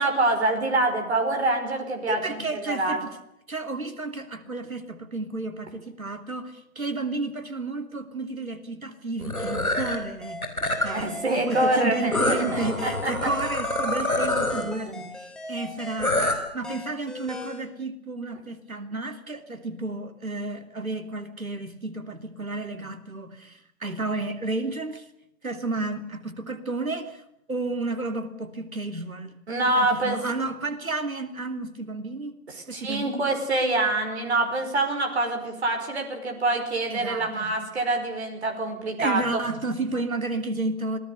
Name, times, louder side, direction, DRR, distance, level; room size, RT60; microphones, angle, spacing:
voice 1, 0.0-3.0 10.9-13.1 14.9-15.0 29.5-30.2 32.7-39.2, right 2 dB, 50° right, 3 dB, 5.2 m, -25 dB
voice 2, 2.1-3.1 3.5-10.4 10.8-11.1 11.4-25.0 25.4-27.2 27.5-29.4 29.8-32.4 32.7-33.3 36.9-37.7 39.0-41.0, right 2 dB, 75° right, 8 dB, 3.1 m, -32 dB
sound 1, 9.2-10.0 10.4-11.0 12.1-14.7 16.0-16.4, left 2 dB, 85° left, 5.4 m, -26 dB
sound 2, 9.4-17.6, left 1 dB, ahead, 1.6 m, -38 dB
27.0 x 19.0 x 6.7 m, 0.75 s
figure-of-eight pair, 140°, 42 cm